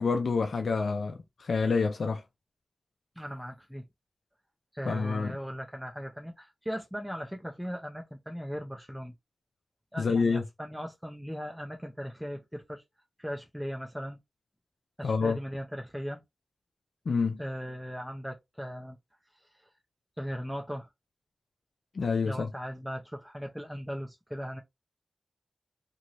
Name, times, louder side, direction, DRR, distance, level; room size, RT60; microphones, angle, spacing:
voice 1, 0.0-2.2 4.9-5.3 10.0-10.4 15.0-15.4 17.1-17.4 21.9-22.5, left 4 dB, 75° left, 0.4 m, -27 dB
voice 2, 3.2-3.9 4.7-9.1 9.9-12.8 13.2-14.2 15.0-16.2 17.4-19.0 19.3-19.7 20.2-20.9 22.2-24.6, equal, ahead, 0.6 m, -38 dB
2.7 x 2.6 x 2.9 m
cardioid pair, 45°, 0 cm